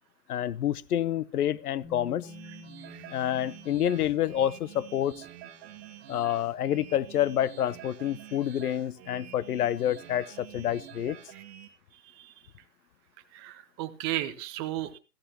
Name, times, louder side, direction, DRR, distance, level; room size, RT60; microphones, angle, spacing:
voice 1, 0.3-2.3 3.1-5.2 6.1-11.2, left 11 dB, 65° left, 0.8 m, -28 dB
Bass guitar, 1.8-7.9, left 4 dB, 15° left, 1.4 m, -52 dB
sound 1, 2.2-11.7, right 12 dB, 40° right, 1.8 m, -48 dB
voice 2, 13.3-15.0, right 14 dB, 15° right, 0.6 m, -34 dB
17.0 x 14.5 x 2.9 m
hypercardioid pair, 145°, 49 cm